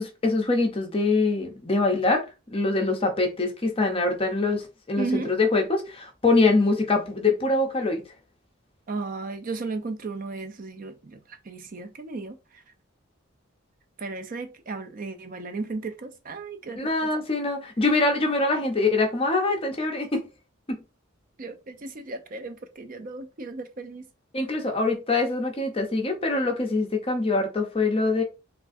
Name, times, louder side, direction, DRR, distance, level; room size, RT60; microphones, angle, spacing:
voice 1, 0.0-2.2 2.5-4.6 4.9-8.0 16.8-20.2 20.7-20.8 24.3-28.2, left 3 dB, 25° left, 0.6 m, -24 dB
voice 2, 5.0-5.3 8.9-11.2 11.5-12.4 14.0-17.1 21.4-24.0, right 3 dB, 40° right, 0.4 m, -34 dB
3.4 x 2.4 x 2.5 m
head